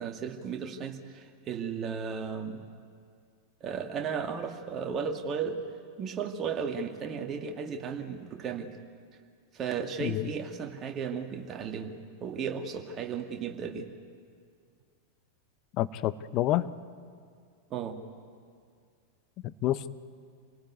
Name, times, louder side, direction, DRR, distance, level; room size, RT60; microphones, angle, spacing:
voice 1, 0.0-2.6 3.6-5.6 6.0-8.8 9.5-13.9 17.7-18.0, right 6 dB, 30° right, 5 dB, 2.1 m, -35 dB
voice 2, 15.8-16.6 19.6-19.9, left 14 dB, 40° left, 14 dB, 0.8 m, -28 dB
27.0 x 18.0 x 9.5 m, 2.2 s
figure-of-eight pair, 90°, 0 cm